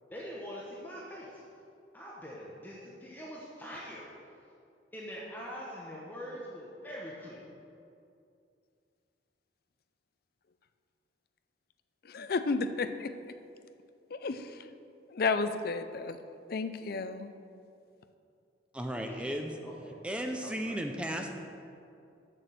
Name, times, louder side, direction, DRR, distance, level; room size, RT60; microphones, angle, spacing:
voice 1, 0.1-1.4 1.9-4.1 4.9-7.4 19.0-19.3 19.6-19.9 20.3-20.8, equal, 10° left, -5 dB, 0.9 m, -44 dB
voice 2, 12.1-13.1 14.1-14.5 15.1-16.2 16.5-17.3, left 4 dB, 55° left, 10 dB, 0.4 m, -32 dB
voice 3, 18.7-19.6 20.0-21.3, equal, 5° right, 4 dB, 0.5 m, -35 dB
6.7 x 6.1 x 7.5 m, 2.5 s
head